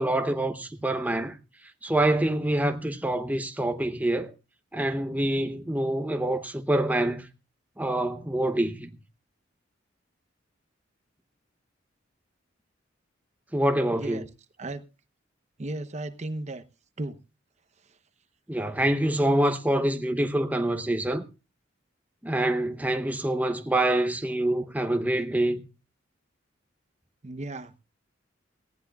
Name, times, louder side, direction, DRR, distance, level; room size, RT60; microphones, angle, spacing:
voice 1, 0.0-1.4 1.8-4.3 4.7-7.3 7.8-8.9 13.5-14.2 18.5-21.2 22.2-25.6, right 1 dB, 10° right, 0.8 m, -26 dB
voice 2, 15.6-16.6 17.0-17.2 27.2-27.8, right 2 dB, 35° right, 0.8 m, -35 dB
18.5 x 15.0 x 2.3 m
head